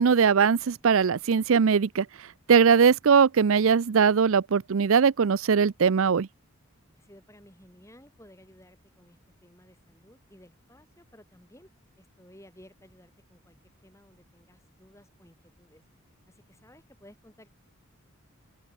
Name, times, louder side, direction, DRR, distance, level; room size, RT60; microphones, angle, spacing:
voice 1, 0.0-2.1 2.5-6.3, right 6 dB, 70° right, 0.5 m, -20 dB
voice 2, 7.0-11.7 12.0-15.8 16.3-17.5, equal, 15° left, 6.6 m, -56 dB
open air
head